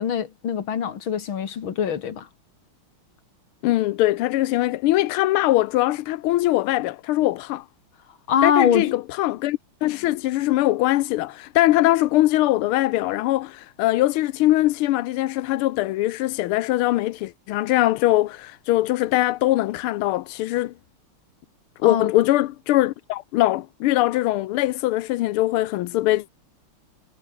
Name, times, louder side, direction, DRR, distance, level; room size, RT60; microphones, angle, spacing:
voice 1, 0.0-2.3 8.3-8.9 21.8-22.1, left 8 dB, 70° left, 2.6 m, -23 dB
voice 2, 3.6-7.6 8.4-20.7 21.8-26.3, left 16 dB, 90° left, 1.6 m, -22 dB
omnidirectional pair, 2.3 m